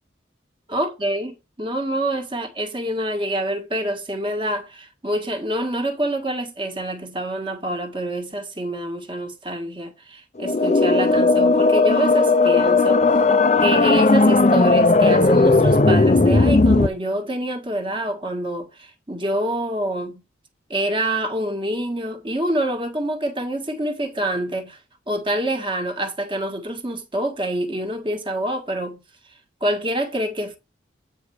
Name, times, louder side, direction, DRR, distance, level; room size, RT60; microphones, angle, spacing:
voice 1, 0.7-13.1 13.6-20.2 20.7-24.8 25.1-29.0 29.6-30.6, right 1 dB, 25° right, 1.6 m, -26 dB
sound 1, 10.4-16.9, left 3 dB, 35° left, 0.5 m, -16 dB
9.1 x 4.4 x 6.4 m
head